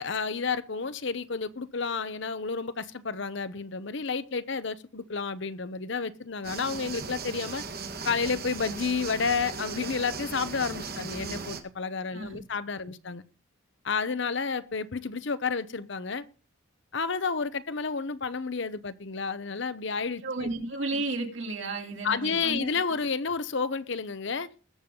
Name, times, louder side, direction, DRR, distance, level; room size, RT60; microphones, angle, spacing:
voice 1, 0.0-7.6 8.0-13.2 13.8-16.3 16.9-20.5 22.0-24.5, left 5 dB, 60° left, 0.8 m, -31 dB
sound 1, 6.4-11.6, right 4 dB, 45° right, 1.5 m, -38 dB
voice 2, 20.2-22.7, right 2 dB, 60° right, 2.9 m, -33 dB
21.0 x 7.2 x 3.8 m
head